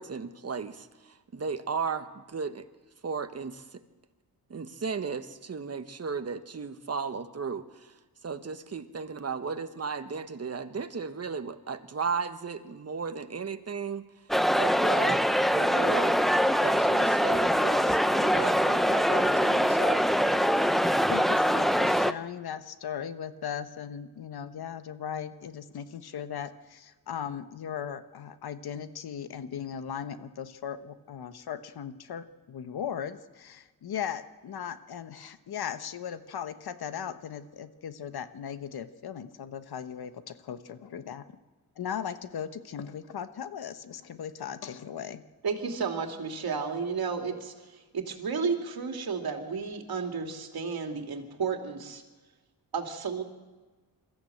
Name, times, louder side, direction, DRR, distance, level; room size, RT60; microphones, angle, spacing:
voice 1, 0.0-2.7 3.0-3.8 4.5-7.9 8.2-14.1 14.5-15.2 15.5-16.2 16.6-20.1 20.4-20.5, right 5 dB, 40° right, 9 dB, 1.4 m, -35 dB
sound 1, 14.3-22.1, equal, ahead, 0.8 m, -23 dB
voice 2, 21.1-41.2 41.8-45.2, left 8 dB, 75° left, 11 dB, 1.2 m, -38 dB
voice 3, 45.4-52.0 52.7-53.2, right 5 dB, 70° right, 4 dB, 2.8 m, -32 dB
23.0 x 14.0 x 7.9 m, 1.2 s
cardioid pair, 80°, 38 cm